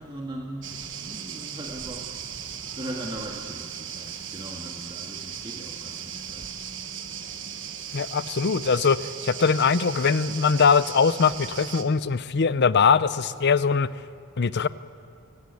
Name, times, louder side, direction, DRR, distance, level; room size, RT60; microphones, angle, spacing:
voice 1, 0.0-2.4 2.7-6.6, right 1 dB, 25° right, -1 dB, 1.8 m, -39 dB
sound 1, 0.6-11.8, right 8 dB, 55° right, 1.4 m, -37 dB
voice 2, 7.9-13.9 14.4-14.7, left 5 dB, 50° left, 15 dB, 0.6 m, -21 dB
23.0 x 17.0 x 9.5 m, 2.5 s
head